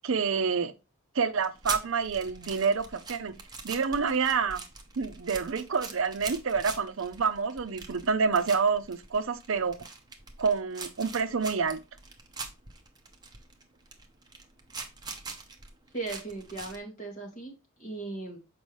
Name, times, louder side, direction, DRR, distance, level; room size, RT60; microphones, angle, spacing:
voice 1, 0.0-0.7 1.1-3.3 3.6-4.6 5.0-9.8 10.4-11.8, right 5 dB, 60° right, 0.5 m, -28 dB
sound 1, 1.4-16.8, right 4 dB, 20° right, 0.8 m, -43 dB
voice 2, 15.9-17.5 17.8-18.4, right 3 dB, 35° left, 2.2 m, -37 dB
6.9 x 5.2 x 3.1 m
head